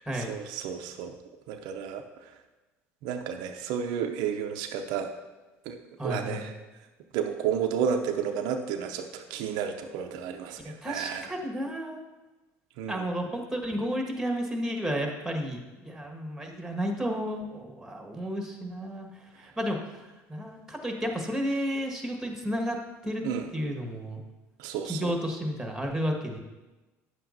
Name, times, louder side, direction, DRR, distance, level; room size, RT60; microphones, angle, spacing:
voice 1, 0.1-1.1 1.5-2.0 3.0-5.1 5.7-5.8 6.0-6.5 7.1-11.3 12.8-13.0 23.2-23.5 24.6-25.1, right 7 dB, 70° right, 5 dB, 0.6 m, -31 dB
voice 2, 6.0-6.4 10.8-12.0 12.9-23.2 23.5-24.2 24.8-26.4, equal, 5° right, 2 dB, 1.6 m, -32 dB
9.7 x 7.6 x 2.7 m, 1.1 s
hypercardioid pair, 75°, 7 cm